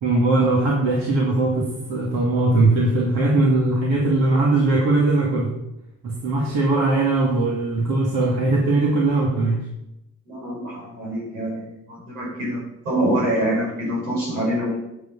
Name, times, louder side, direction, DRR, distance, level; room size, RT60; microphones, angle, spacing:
voice 1, 0.0-5.5 6.0-9.6, right 2 dB, 75° right, -3 dB, 2.5 m, -20 dB
voice 2, 10.3-14.8, right 1 dB, 90° right, -4 dB, 5.2 m, -25 dB
9.5 x 9.3 x 5.6 m, 0.88 s
hypercardioid pair, 50°, 40 cm